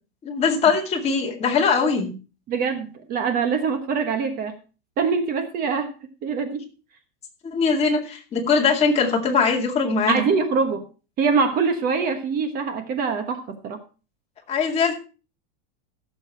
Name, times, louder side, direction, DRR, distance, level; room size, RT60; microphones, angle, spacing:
voice 1, 0.2-2.1 7.4-10.2 14.5-14.9, left 5 dB, 20° left, 1 dB, 2.2 m, -21 dB
voice 2, 2.5-4.5 5.0-5.9 6.2-6.6 10.1-10.8 11.2-13.8, right 5 dB, 30° right, 8 dB, 1.2 m, -24 dB
15.0 x 7.2 x 4.3 m, 0.34 s
supercardioid pair, 155°, 29 cm